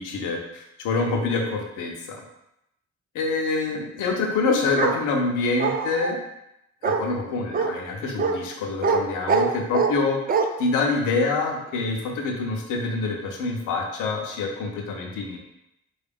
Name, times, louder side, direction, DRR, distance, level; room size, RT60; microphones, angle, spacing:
voice 1, 0.0-2.2 3.1-6.2 6.8-10.2 10.6-15.4, left 3 dB, 90° left, 1 dB, 0.6 m, -26 dB
Bark, 4.8-5.0 5.6-6.2 6.8-7.0 7.5-7.7 8.2-8.4 8.8-9.0 9.3-9.9 10.3-10.5, right 5 dB, 30° right, 0.4 m, -22 dB
3.5 x 2.4 x 3.4 m, 0.83 s
cardioid pair, 90°, 30 cm